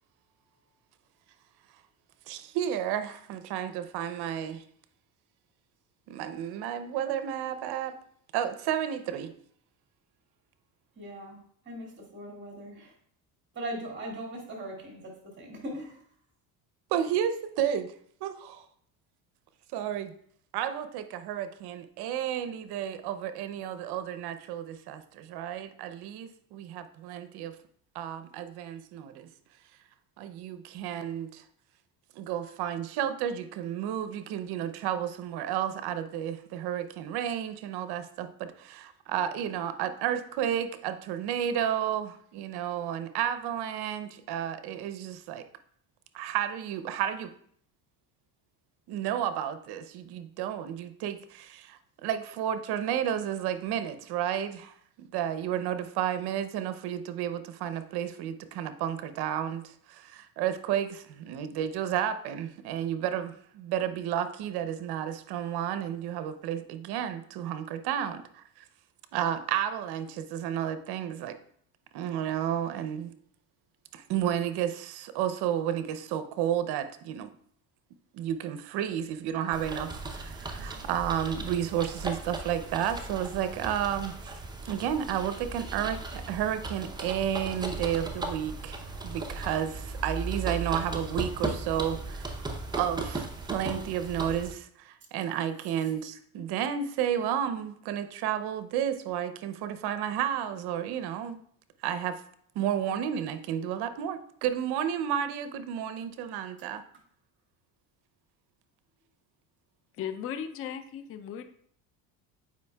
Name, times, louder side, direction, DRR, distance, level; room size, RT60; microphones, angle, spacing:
voice 1, 2.3-4.6 6.1-8.0 8.3-9.3 16.9-17.9 18.2-18.6 19.7-20.1 20.5-27.6 27.9-29.3 30.2-31.4 32.2-45.5 46.1-47.3 48.9-68.6 69.1-71.4 71.9-73.1 73.9-77.3 78.1-84.3 84.6-92.4 92.7-101.4 101.8-102.2 102.6-106.8, right 10 dB, 60° right, 11 dB, 0.7 m, -32 dB
voice 2, 11.0-11.4 11.7-12.9 13.5-16.0, right 1 dB, 25° right, 0 dB, 2.3 m, -39 dB
sound 1, 79.5-94.5, right 3 dB, 10° right, 0.6 m, -37 dB
voice 3, 110.0-111.4, left 8 dB, 30° left, 9 dB, 0.5 m, -36 dB
8.2 x 5.0 x 2.3 m, 0.62 s
supercardioid pair, 110°, 43 cm